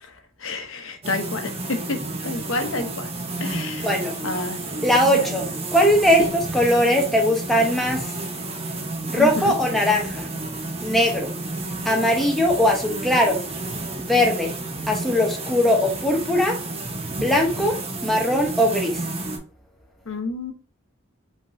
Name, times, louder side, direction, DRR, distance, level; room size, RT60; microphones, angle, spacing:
voice 1, 0.4-3.1 3.4-3.9 4.2-4.6 5.1-5.4 6.2-6.3 9.2-9.6 20.1-20.5, left 3 dB, 85° left, 0.9 m, -29 dB
sound 1, 1.0-19.4, right 2 dB, 30° right, 0.8 m, -31 dB
voice 2, 3.8-4.2 4.8-8.2 9.1-10.3 10.8-11.3 11.8-13.4 14.0-14.6 14.9-16.6 17.1-19.1, left 1 dB, ahead, 1.0 m, -20 dB
5.2 x 3.6 x 2.7 m
head